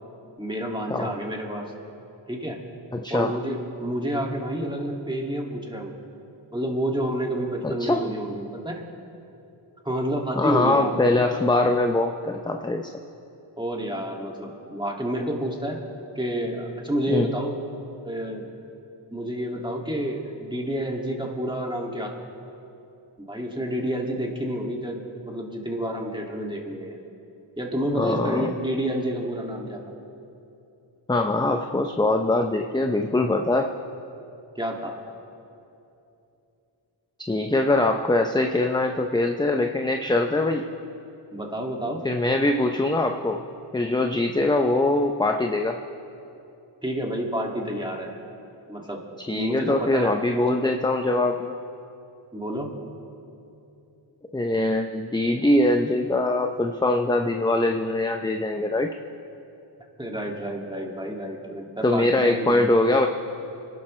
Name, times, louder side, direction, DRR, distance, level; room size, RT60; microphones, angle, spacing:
voice 1, 0.4-1.7 2.3-2.6 3.1-6.0 6.5-8.8 9.8-11.0 13.6-15.8 16.2-17.6 18.0-18.4 19.1-22.2 23.2-27.0 27.6-29.8 34.6-34.9 41.3-42.0 46.8-48.2 48.7-50.8 52.3-52.7 60.0-62.7, equal, 10° right, 0 dB, 2.2 m, -29 dB
voice 2, 2.9-3.3 7.6-8.1 10.4-12.9 17.1-17.3 27.8-28.5 31.1-33.8 37.3-40.6 42.0-43.4 43.7-45.8 49.3-51.5 54.3-58.9 61.8-63.1, left 2 dB, 10° left, 4 dB, 0.6 m, -23 dB
26.5 x 12.0 x 3.2 m, 2.8 s
cardioid pair, 55°, 49 cm